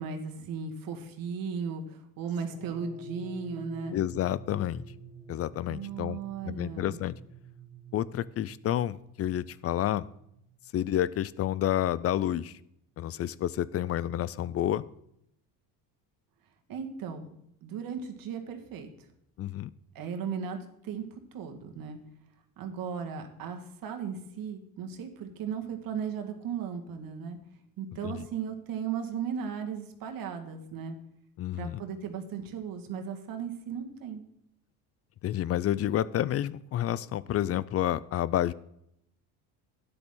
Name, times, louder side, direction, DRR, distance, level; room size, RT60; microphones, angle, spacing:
voice 1, 0.0-4.0 5.7-7.0 16.7-18.9 20.0-21.0 21.3-22.0 22.6-27.4 27.8-31.0 31.5-34.2, right 6 dB, 60° right, 5 dB, 1.8 m, -36 dB
sound 1, 2.5-11.0, right 1 dB, 75° right, 2.3 m, -48 dB
voice 2, 3.9-4.8 5.3-6.2 6.4-7.2 7.9-10.1 10.7-12.5 13.0-14.8 19.4-19.7 28.0-28.2 31.4-31.8 35.2-38.5, left 12 dB, 40° left, 20 dB, 0.5 m, -29 dB
12.0 x 9.8 x 3.8 m, 0.75 s
cardioid pair, 110°, 39 cm